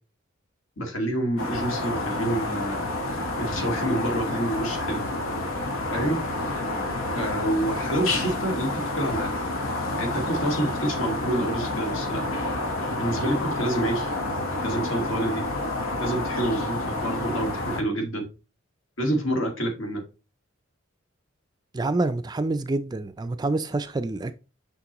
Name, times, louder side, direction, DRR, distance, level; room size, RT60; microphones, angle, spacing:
voice 1, 0.8-2.9 3.4-5.0 5.9-6.2 7.1-9.3 10.0-12.2 13.0-14.1 14.6-15.4 16.0-18.3 19.0-20.0, right 1 dB, 75° left, 2.0 m, -27 dB
sound 1, 1.4-17.8, left 2 dB, 90° left, 1.3 m, -29 dB
voice 2, 21.7-24.3, right 2 dB, 20° right, 0.3 m, -27 dB
5.9 x 5.9 x 2.9 m
head